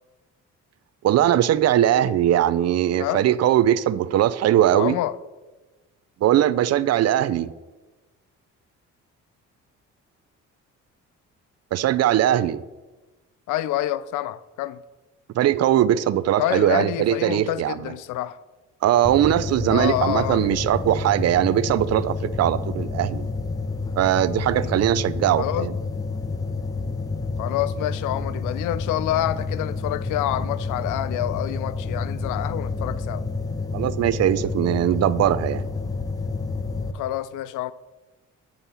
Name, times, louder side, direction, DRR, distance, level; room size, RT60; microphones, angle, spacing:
voice 1, 1.0-5.0 6.2-7.5 11.7-12.6 15.3-17.9 18.8-23.3 24.0-25.7 33.7-35.6, right 12 dB, 55° right, 0.5 m, -20 dB
voice 2, 4.7-5.2 13.5-14.8 16.4-18.4 19.7-20.6 24.6-24.7 25.4-25.7 27.4-33.2 36.9-37.7, left 13 dB, 85° left, 0.5 m, -27 dB
sound 1, 19.0-36.9, left 3 dB, 10° left, 0.6 m, -29 dB
7.0 x 5.5 x 5.7 m
cardioid pair, 90°, 30 cm